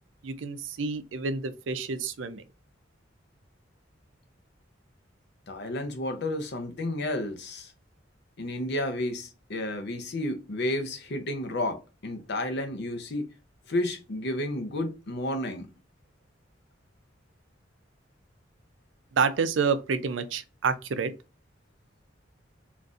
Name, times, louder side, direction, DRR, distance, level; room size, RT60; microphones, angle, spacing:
voice 1, 0.2-2.4 19.1-21.1, right 5 dB, 85° right, 0.5 m, -28 dB
voice 2, 5.5-7.7 8.4-13.3 13.7-15.7, left 1 dB, 65° left, 0.7 m, -31 dB
3.9 x 2.5 x 2.4 m
head